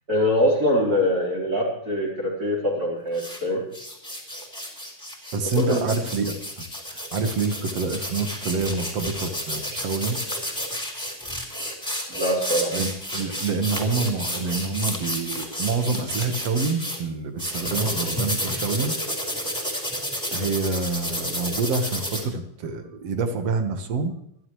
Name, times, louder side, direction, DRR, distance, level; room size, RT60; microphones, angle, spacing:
voice 1, 0.1-3.7 5.5-5.8 12.1-12.8, left 1 dB, 25° right, -5 dB, 4.2 m, -23 dB
sound 1, 3.1-3.4 3.7-17.0 17.4-22.2, equal, ahead, 4.5 m, -31 dB
voice 2, 5.3-10.2 12.7-18.9 20.3-24.1, right 4 dB, 55° right, 7 dB, 2.1 m, -27 dB
25.5 x 12.0 x 3.2 m, 0.75 s
omnidirectional pair, 4.1 m